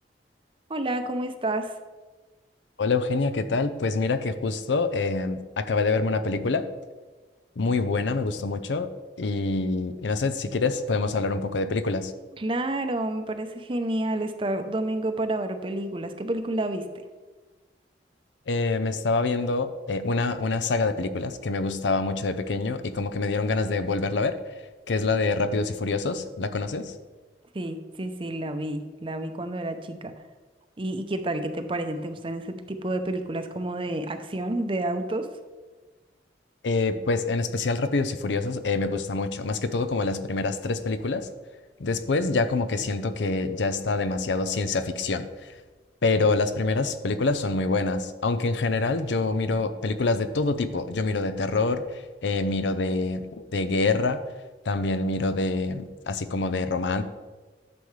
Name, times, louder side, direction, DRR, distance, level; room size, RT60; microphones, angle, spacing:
voice 1, 0.7-1.7 12.4-16.9 27.5-30.1 30.8-35.3, right 1 dB, 30° right, 8 dB, 0.6 m, -29 dB
voice 2, 2.8-6.7 7.6-8.9 9.2-12.1 18.5-24.4 24.9-26.9 36.6-41.3 41.8-45.5 46.0-54.2 54.7-57.0, left 3 dB, 85° left, 10 dB, 0.6 m, -26 dB
11.5 x 6.9 x 3.2 m, 1.3 s
head